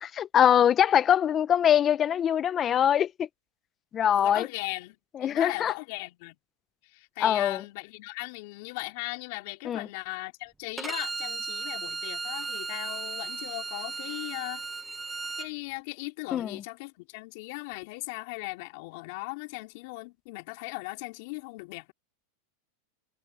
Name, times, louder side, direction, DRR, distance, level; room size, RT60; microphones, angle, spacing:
voice 1, 0.0-3.3 3.9-4.5 5.1-5.7 7.2-7.6 9.6-9.9 16.3-16.6, left 9 dB, 30° left, 0.9 m, -23 dB
voice 2, 4.1-6.4 6.8-14.7 15.4-21.9, left 26 dB, 60° left, 3.8 m, -38 dB
Bowed string instrument, 10.8-15.5, right 4 dB, 10° right, 1.8 m, -35 dB
hypercardioid pair, 125°, 0 cm